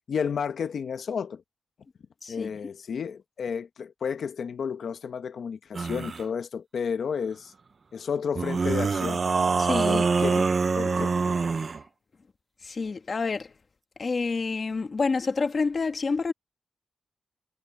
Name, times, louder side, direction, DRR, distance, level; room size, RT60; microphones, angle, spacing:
voice 1, 0.1-1.4 2.3-7.5 7.9-9.2 9.9-11.2, left 6 dB, 75° left, 1.1 m, -32 dB
voice 2, 2.2-2.6 9.6-10.0 12.6-13.5 14.0-16.3, left 4 dB, 40° left, 1.6 m, -28 dB
sound 1, 5.7-6.2 8.4-11.8, right 4 dB, 45° right, 0.5 m, -25 dB
wide cardioid pair, 145°, 0 cm